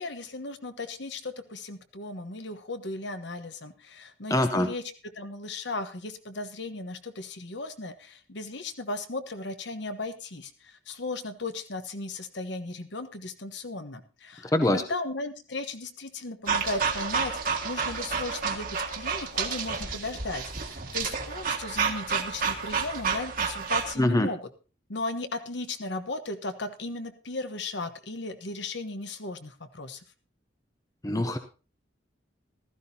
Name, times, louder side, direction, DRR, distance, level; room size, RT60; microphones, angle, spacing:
voice 1, 0.0-4.8 5.1-24.4 24.9-30.0, left 2 dB, 60° left, 9 dB, 1.1 m, -36 dB
voice 2, 4.3-4.7 14.5-14.8 24.0-24.3 31.0-31.4, left 1 dB, 15° left, 8 dB, 0.7 m, -23 dB
sound 1, 16.5-23.9, right 5 dB, 45° right, 1.6 m, -30 dB
15.0 x 13.5 x 2.8 m, 0.33 s
head